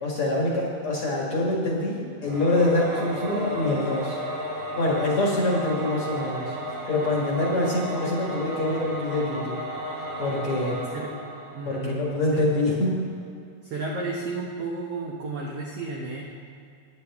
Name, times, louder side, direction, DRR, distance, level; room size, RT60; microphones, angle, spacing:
voice 1, 0.0-4.2 4.8-9.6 10.2-10.8 11.7-13.0, left 1 dB, 50° left, -3 dB, 1.9 m, -25 dB
Singing / Musical instrument, 2.2-12.3, equal, 50° right, 2.1 m, -34 dB
voice 2, 11.5-11.9 12.3-12.4 13.6-16.2, right 3 dB, 75° right, -2 dB, 1.4 m, -32 dB
19.0 x 8.9 x 3.5 m, 2.3 s
omnidirectional pair, 4.2 m